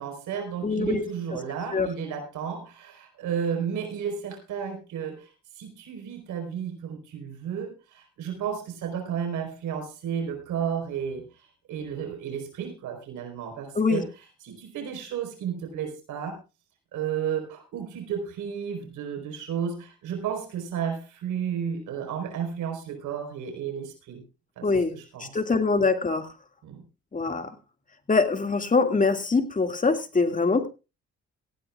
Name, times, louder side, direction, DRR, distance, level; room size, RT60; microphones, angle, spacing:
voice 1, 0.0-5.3 5.6-14.1 14.4-16.4 16.9-24.2 24.6-24.7 24.9-25.3 26.6-26.8, right 7 dB, 85° right, 3 dB, 4.4 m, -32 dB
voice 2, 0.6-1.0 1.7-1.9 13.8-14.0 24.6-24.9 25.2-26.3 27.1-27.5 28.1-30.7, left 4 dB, 25° left, 6 dB, 2.2 m, -23 dB
18.0 x 16.0 x 2.4 m, 0.31 s
cardioid pair, 90°, 30 cm